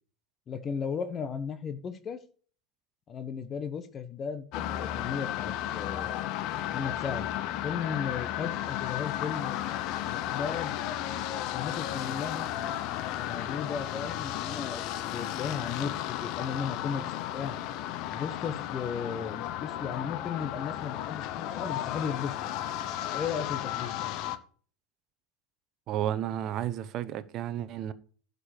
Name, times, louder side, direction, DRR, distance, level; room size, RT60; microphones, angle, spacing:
voice 1, 0.5-2.2 3.1-6.3 6.7-7.3 7.6-9.6 10.0-10.7 11.5-12.5 13.1-17.0 17.3-17.5 18.1-22.5 23.1-23.9, left 6 dB, 35° left, 1.2 m, -35 dB
sound 1, 4.5-24.4, left 12 dB, 55° left, 0.9 m, -34 dB
voice 2, 25.9-27.9, right 11 dB, 45° right, 0.9 m, -32 dB
11.5 x 5.3 x 6.7 m
hypercardioid pair, 95°, 0 cm